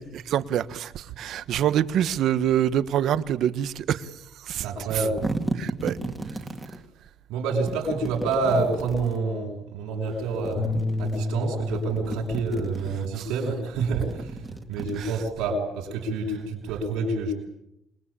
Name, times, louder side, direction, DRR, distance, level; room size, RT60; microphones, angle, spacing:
voice 1, 0.1-4.1 4.5-4.6 5.6-6.0 13.2-13.3 15.0-15.1, right 10 dB, 50° right, 1.3 m, -25 dB
voice 2, 4.5-5.2 7.3-17.3, right 3 dB, 90° right, 7.2 m, -28 dB
sound 1, 4.8-6.8 7.6-9.2 10.1-11.2 11.6-13.1 13.7-15.5, right 2 dB, 5° right, 2.3 m, -35 dB
sound 2, 10.6-16.8, left 2 dB, 65° left, 4.3 m, -34 dB
27.5 x 22.0 x 8.9 m
cardioid pair, 170°, 0 cm